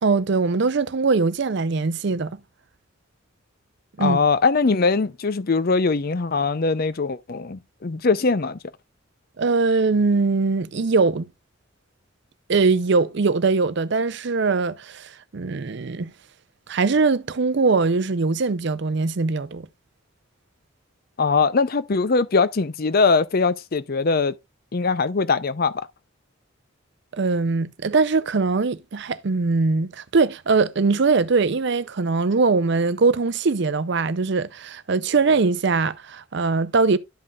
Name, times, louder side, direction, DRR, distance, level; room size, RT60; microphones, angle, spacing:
voice 1, 0.0-2.4 4.0-4.2 9.4-11.3 12.5-16.1 16.7-19.7 27.1-37.0, right 4 dB, 60° right, 0.5 m, -21 dB
voice 2, 4.0-8.6 21.2-24.3 24.7-25.7, left 4 dB, 50° left, 0.5 m, -21 dB
12.5 x 5.4 x 2.4 m
head